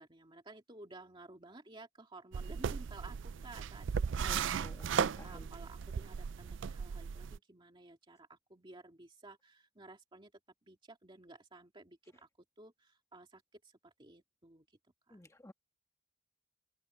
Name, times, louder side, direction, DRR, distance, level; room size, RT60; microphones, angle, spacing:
voice 1, 0.0-10.3 10.6-12.3 12.6-14.8 15.1-15.2, right 2 dB, 25° right, 2.2 m, -55 dB
sound 1, 2.3-7.4, right 6 dB, 70° right, 0.4 m, -36 dB
voice 2, 4.2-5.5 15.1-15.5, left 1 dB, 15° left, 1.7 m, -52 dB
open air
head